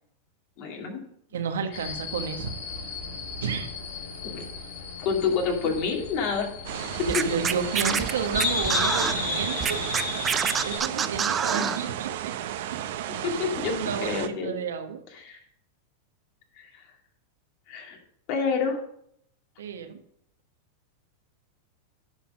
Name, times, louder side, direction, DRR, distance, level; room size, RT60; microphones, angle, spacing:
voice 1, 0.6-1.0 4.3-4.4 5.0-7.1 7.8-8.0 11.6-11.8 13.1-14.6 15.1-15.4 16.5-16.8 17.7-18.0 18.3-18.8, left 5 dB, 50° left, 1 dB, 2.4 m, -29 dB
voice 2, 1.3-2.6 3.4-3.7 5.6-5.7 7.0-9.8 10.6-12.3 13.6-15.0 19.6-20.0, right 6 dB, 90° right, 7 dB, 1.2 m, -31 dB
sound 1, 1.7-10.8, left 5 dB, 70° left, 2.2 m, -34 dB
sound 2, 6.7-14.3, right 11 dB, 70° right, 0.7 m, -33 dB
Scratching (performance technique), 7.1-9.1 9.6-11.8, right 7 dB, 20° right, 0.5 m, -26 dB
10.0 x 4.2 x 6.5 m, 0.70 s
hypercardioid pair, 125°, 0 cm